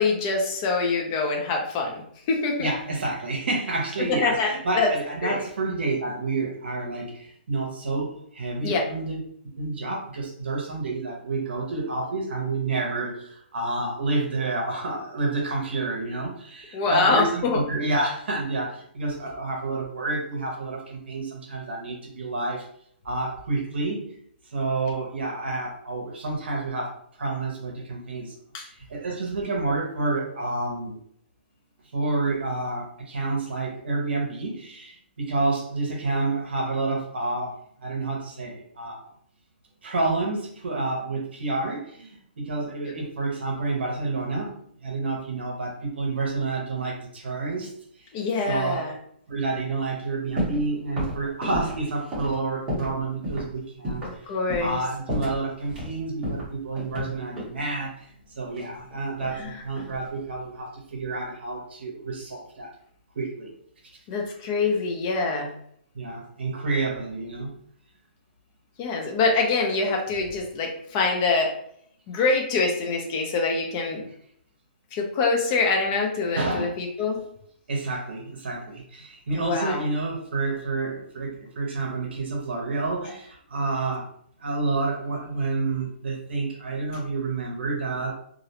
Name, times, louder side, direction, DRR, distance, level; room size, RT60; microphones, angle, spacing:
voice 1, 0.0-2.0 2.3-2.7 4.1-4.9 5.2-5.4 8.6-8.8 16.7-17.6 28.5-28.7 48.1-48.9 54.0-54.8 59.4-59.5 64.1-65.5 68.8-71.5 72.1-74.0 74.9-77.2 79.3-79.8, left 4 dB, 20° left, 1 dB, 0.4 m, -25 dB
voice 2, 2.6-9.2 9.6-22.7 23.0-24.0 24.4-28.3 28.6-31.0 31.9-39.1 39.8-44.5 44.8-47.7 48.0-48.1 48.5-48.8 49.3-54.3 54.6-62.7 63.2-63.5 65.9-67.5 76.4-76.7 77.2-77.3 77.7-84.1 84.4-88.1, right 3 dB, 75° right, -1 dB, 0.6 m, -29 dB
sound 1, 50.4-50.7 51.0-53.0 53.2-53.5 53.8-54.2 54.5-54.8 55.1-55.9 56.2-57.6 58.5-59.4 59.7-60.2, equal, 10° right, 0.8 m, -32 dB
2.4 x 2.0 x 2.7 m, 0.68 s
hypercardioid pair, 175°, 6 cm